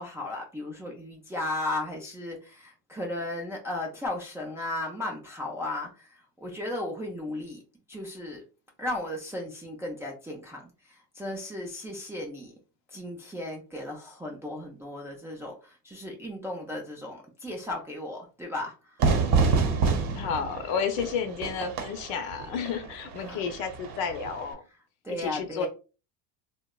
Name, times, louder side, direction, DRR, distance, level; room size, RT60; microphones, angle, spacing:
voice 1, 0.0-7.6 7.9-8.4 8.8-12.5 12.9-19.1 23.2-23.4 25.0-25.7, left 1 dB, 5° right, 0.3 m, -35 dB
Fire / Fireworks, 19.0-24.5, right 4 dB, 45° right, 0.8 m, -28 dB
voice 2, 20.1-24.6 25.1-25.7, left 6 dB, 65° left, 0.7 m, -31 dB
2.8 x 2.1 x 2.2 m
supercardioid pair, 105°, 48 cm